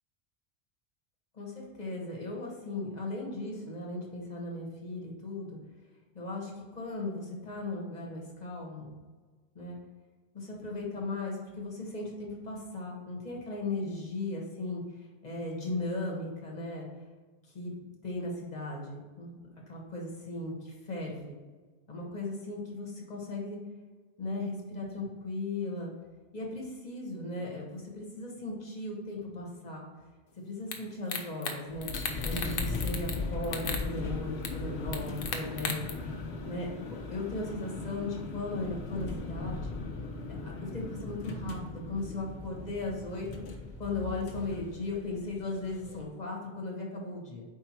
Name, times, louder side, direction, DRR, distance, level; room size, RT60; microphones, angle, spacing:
voice 1, 1.3-5.6 6.1-8.9 9.5-9.8 10.3-16.9 17.4-17.7 18.0-19.3 19.7-21.4 21.9-23.6 24.2-25.9 26.3-29.9 30.4-31.9 32.2-35.8 36.4-39.7 40.3-47.4, left 2 dB, 40° left, -2 dB, 1.4 m, -37 dB
sound 1, 30.7-30.8 31.1-31.6 31.8-33.2 33.4-33.8 34.4-34.5 34.9-35.9, left 5 dB, 60° left, 0.9 m, -34 dB
sound 2, 31.7-46.1, left 3 dB, 85° left, 1.1 m, -38 dB
4.6 x 4.5 x 4.5 m, 1.4 s
omnidirectional pair, 1.1 m